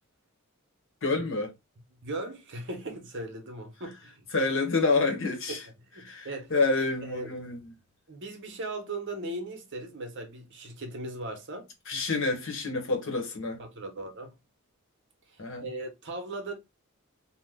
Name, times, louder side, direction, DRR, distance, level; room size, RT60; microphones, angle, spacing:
voice 1, 1.0-1.5 4.3-5.6 6.0-7.6 11.9-13.6 15.4-15.6, left 3 dB, 60° left, 0.9 m, -28 dB
voice 2, 2.0-4.3 5.5-5.6 5.9-6.5 7.1-7.3 8.1-11.7 13.6-14.3 15.3-16.5, right 2 dB, 55° right, 0.8 m, -38 dB
2.7 x 2.1 x 3.5 m
head